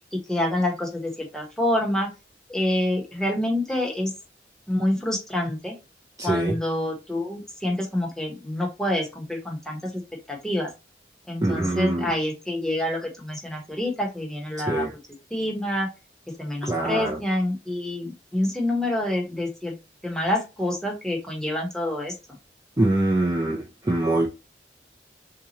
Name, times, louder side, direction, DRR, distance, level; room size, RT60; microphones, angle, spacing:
voice 1, 0.1-2.1 2.5-4.1 4.7-5.8 6.2-10.0 10.3-10.7 11.3-14.9 15.3-15.9 16.4-19.8 20.0-22.1, left 1 dB, 5° left, 1.0 m, -27 dB
voice 2, 6.2-6.6 11.4-12.1 14.7-14.9 16.6-17.2 22.8-24.3, right 2 dB, 20° right, 0.5 m, -24 dB
3.7 x 2.8 x 2.9 m
head